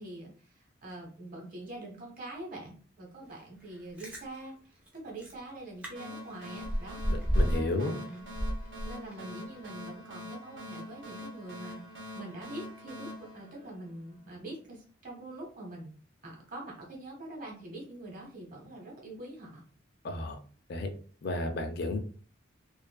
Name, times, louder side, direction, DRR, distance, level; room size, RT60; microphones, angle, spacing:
voice 1, 0.0-7.0 7.5-8.3 8.8-15.9 16.2-19.6, right 1 dB, 45° right, -1 dB, 1.0 m, -44 dB
Chewing mastication, 3.7-4.2 4.9-5.0 5.2-5.4 5.8-5.9 6.2-7.8 8.1-9.3 9.7-9.8, equal, 5° right, 0.6 m, -31 dB
sound 1, 6.0-14.3, left 1 dB, 80° right, 0.9 m, -45 dB
voice 2, 7.1-8.0 20.0-20.4 20.7-20.9 21.2-22.0, left 2 dB, 55° left, 6 dB, 0.4 m, -32 dB
2.6 x 2.4 x 2.2 m, 0.40 s
head